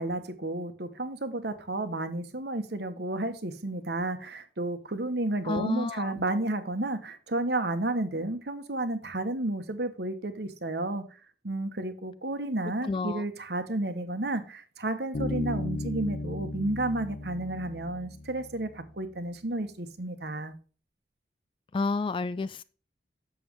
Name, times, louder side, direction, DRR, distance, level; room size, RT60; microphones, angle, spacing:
voice 1, 0.0-11.2 11.4-20.5, right 2 dB, 65° right, 1.2 m, -32 dB
voice 2, 5.4-6.1 12.8-13.2 21.7-22.6, left 3 dB, 30° left, 0.3 m, -30 dB
Bass guitar, 15.1-18.8, left 2 dB, 85° left, 0.9 m, -35 dB
7.3 x 7.0 x 3.1 m
head